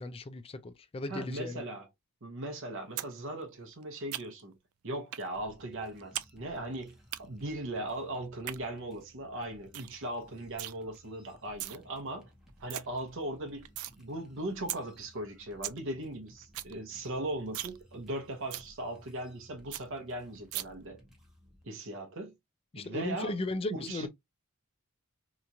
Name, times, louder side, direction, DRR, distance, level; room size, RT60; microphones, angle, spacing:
voice 1, 0.0-1.6 22.7-24.1, left 2 dB, 25° left, 0.4 m, -36 dB
voice 2, 1.1-1.9 2.2-4.6 4.8-12.3 12.6-13.7 14.0-21.0 21.6-22.4 22.7-23.3 23.7-24.1, right 1 dB, 65° right, 0.8 m, -39 dB
sound 1, 3.0-3.1 3.4-4.5 5.1-5.3 5.6-6.3 6.6-7.2 8.2-8.6 9.0-9.1 9.4-9.5 9.7-9.9 10.2-10.7 11.4-11.8 12.2-12.3 12.5-12.8 13.2-13.9 14.3-14.4 14.7-14.8 15.2-15.3 15.5-15.8 16.1-16.2 16.4-16.7 17.1-17.2 17.5-17.8 18.1-18.2 18.5-18.7 19.1-19.2 19.4-19.5 19.7-19.8 20.5-20.6, right 14 dB, 85° right, 0.3 m, -38 dB
sound 2, 5.3-21.6, equal, ahead, 0.8 m, -59 dB
2.9 x 2.3 x 2.6 m
head